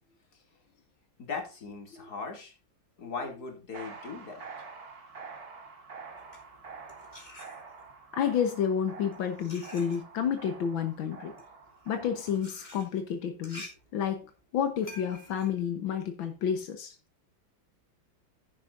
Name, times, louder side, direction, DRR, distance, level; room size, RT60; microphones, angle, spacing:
voice 1, 1.2-2.5 3.0-4.4, left 4 dB, 55° left, 2 dB, 3.3 m, -38 dB
sound 1, 3.7-12.4, right 5 dB, 50° right, 2.3 m, -47 dB
sound 2, 6.1-8.0 8.8-16.7, left 1 dB, 20° left, 3.1 m, -50 dB
voice 2, 8.1-11.3 11.9-14.3 14.5-17.0, left 8 dB, 85° left, 6 dB, 1.9 m, -30 dB
11.5 x 10.0 x 2.6 m, 0.32 s
omnidirectional pair, 2.1 m